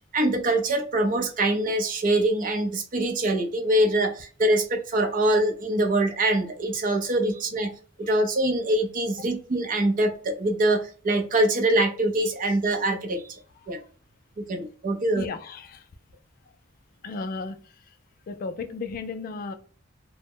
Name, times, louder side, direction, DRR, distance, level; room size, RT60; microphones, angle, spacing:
voice 1, 0.1-7.7 8.0-13.4 13.7-13.8 14.4-15.3, right 1 dB, 40° right, 5 dB, 0.5 m, -24 dB
voice 2, 15.1-15.8 17.0-17.6 18.3-19.5, left 4 dB, 45° left, 9 dB, 0.3 m, -34 dB
2.0 x 2.0 x 3.5 m, 0.41 s
head